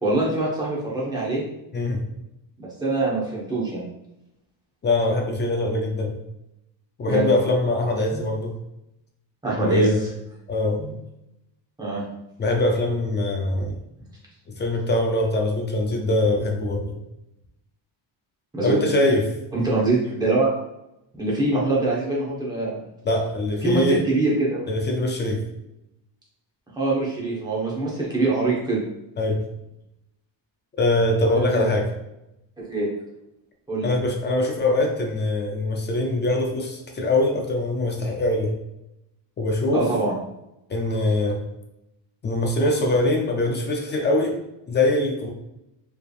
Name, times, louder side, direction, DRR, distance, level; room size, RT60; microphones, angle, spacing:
voice 1, 0.0-1.4 2.6-3.8 7.1-7.3 8.1-8.2 9.4-9.9 10.8-10.9 11.8-12.0 18.5-18.8 19.5-20.5 21.2-22.8 23.6-24.7 26.7-28.8 31.3-31.6 32.6-32.9 33.7-33.9 39.7-40.1, right 2 dB, 10° right, -5 dB, 1.0 m, -24 dB
voice 2, 4.8-6.1 7.0-8.5 9.6-10.0 10.5-10.8 12.4-13.8 14.5-17.0 18.6-19.3 23.1-24.0 24.7-25.4 29.2-29.4 30.8-31.9 33.8-38.5 39.4-39.8 40.7-41.4 42.2-44.4 44.7-45.3, left 2 dB, 25° left, 2 dB, 0.3 m, -22 dB
4.6 x 3.3 x 2.4 m, 0.87 s
cardioid pair, 175°, 46 cm